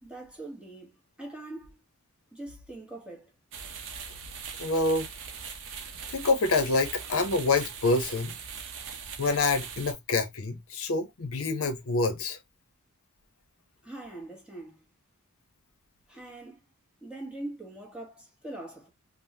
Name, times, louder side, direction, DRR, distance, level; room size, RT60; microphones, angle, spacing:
voice 1, 0.0-1.8 2.3-3.3 13.8-14.8 16.1-16.6 17.0-18.9, right 2 dB, 5° right, 0.8 m, -42 dB
sound 1, 3.5-9.9, right 6 dB, 55° right, 0.6 m, -41 dB
voice 2, 4.6-5.1 6.1-8.3 9.2-12.4, left 3 dB, 65° left, 0.6 m, -26 dB
3.4 x 2.0 x 2.6 m
head